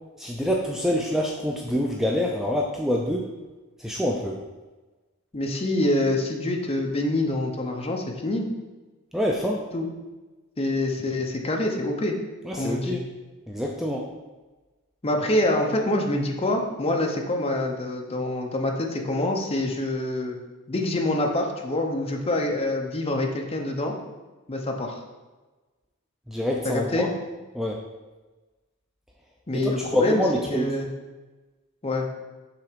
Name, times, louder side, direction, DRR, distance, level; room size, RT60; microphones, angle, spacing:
voice 1, 0.2-3.3 3.8-4.4 9.1-9.6 12.4-13.0 13.5-14.1 26.3-27.1 27.5-27.8 29.5-30.7, left 1 dB, ahead, -1 dB, 0.4 m, -26 dB
voice 2, 5.3-8.5 9.7-9.9 10.6-12.1 12.6-13.0 15.0-20.4 20.7-23.9 24.5-25.0 26.6-27.1 29.5-30.2 30.5-30.9 31.8-32.1, left 1 dB, 25° left, 2 dB, 0.7 m, -26 dB
5.8 x 3.4 x 5.1 m, 1.2 s
head